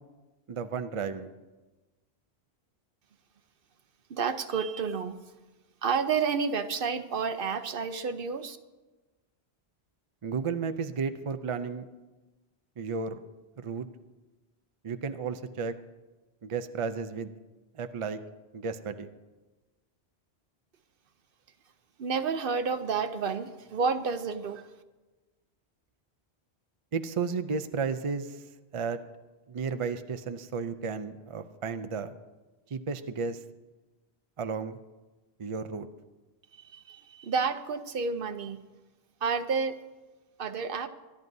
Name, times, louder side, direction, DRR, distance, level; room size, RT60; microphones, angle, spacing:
voice 1, 0.5-1.3 10.2-11.8 12.8-13.2 13.6-13.9 14.8-15.7 16.4-17.3 17.7-18.2 18.5-19.1 26.9-28.4 28.7-29.0 29.5-32.1 32.7-33.4 34.4-34.8 35.4-35.9, right 5 dB, 40° right, 9 dB, 0.5 m, -33 dB
voice 2, 4.1-5.2 5.8-8.6 22.0-24.7 36.5-38.6 39.2-39.8 40.4-40.9, right 5 dB, 60° right, 10 dB, 0.8 m, -30 dB
24.5 x 11.0 x 2.7 m, 1.2 s
omnidirectional pair, 1.1 m